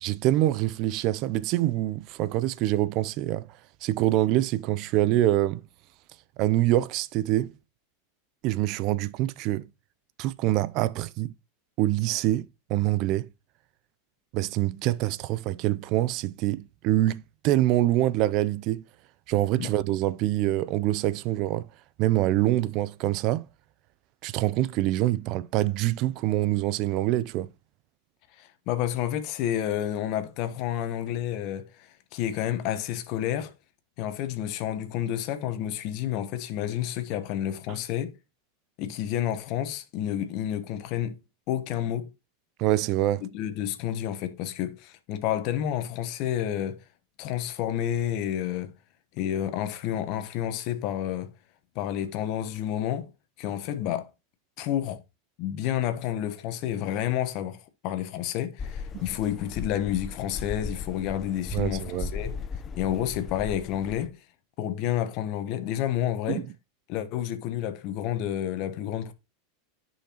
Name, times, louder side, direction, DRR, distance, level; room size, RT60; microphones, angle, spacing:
voice 1, 0.0-3.5 3.8-5.6 6.4-7.5 8.4-9.7 10.2-11.3 11.8-13.3 14.3-18.8 19.3-21.7 22.0-23.5 24.2-27.5 42.6-43.3 58.9-59.0 61.5-62.1 66.3-66.5, right 15 dB, 50° right, 0.5 m, -25 dB
voice 2, 28.4-33.5 34.0-38.1 38.8-41.2 41.5-42.1 43.2-46.8 47.2-48.7 49.1-51.3 51.7-53.1 53.4-54.1 54.6-55.0 55.4-62.4 62.8-64.2 64.6-66.4 66.9-69.1, left 11 dB, 55° left, 1.1 m, -30 dB
sound 1, 58.6-64.1, left 5 dB, 30° left, 0.7 m, -37 dB
9.9 x 5.7 x 3.0 m
hypercardioid pair, 90°, 0 cm